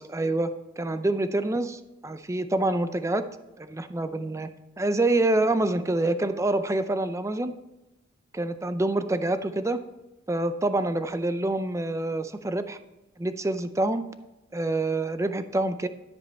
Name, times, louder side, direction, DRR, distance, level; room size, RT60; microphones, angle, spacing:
voice 1, 0.1-0.5 0.8-3.2 3.6-4.5 4.8-7.5 8.3-9.8 10.3-12.8 13.2-14.0 14.5-15.9, right 2 dB, 15° right, 11 dB, 0.5 m, -26 dB
13.0 x 5.3 x 4.2 m, 1.0 s
head